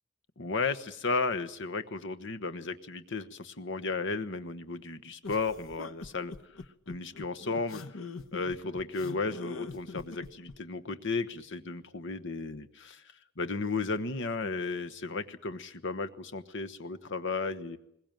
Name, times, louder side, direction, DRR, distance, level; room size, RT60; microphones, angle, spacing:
voice 1, 0.4-6.3 6.9-13.0 13.4-17.8, left 3 dB, 60° left, 9 dB, 1.2 m, -34 dB
sound 1, 5.2-10.6, left 3 dB, 80° left, 1.1 m, -43 dB
21.5 x 19.0 x 9.2 m, 0.78 s
head